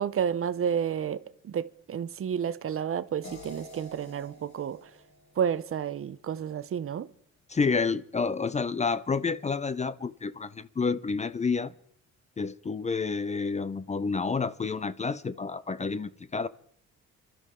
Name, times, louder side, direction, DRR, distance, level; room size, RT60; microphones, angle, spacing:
voice 1, 0.0-4.9 5.4-7.1, right 8 dB, 45° right, 0.7 m, -31 dB
sound 1, 3.2-6.3, equal, 70° left, 3.6 m, -48 dB
voice 2, 7.5-11.7 12.4-16.5, left 4 dB, 25° left, 0.5 m, -29 dB
26.0 x 12.5 x 3.7 m
cardioid pair, 90°, 30 cm